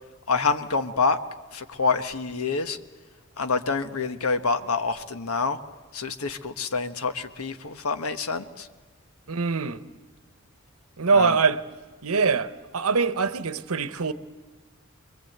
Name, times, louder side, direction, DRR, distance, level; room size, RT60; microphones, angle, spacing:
voice 1, 0.3-1.2 1.5-2.8 3.4-5.6 5.9-8.7 11.1-11.4, left 4 dB, 80° left, 1.4 m, -27 dB
voice 2, 9.3-9.8 11.0-11.6 12.0-14.1, right 4 dB, 80° right, 1.0 m, -23 dB
27.5 x 22.5 x 8.1 m
head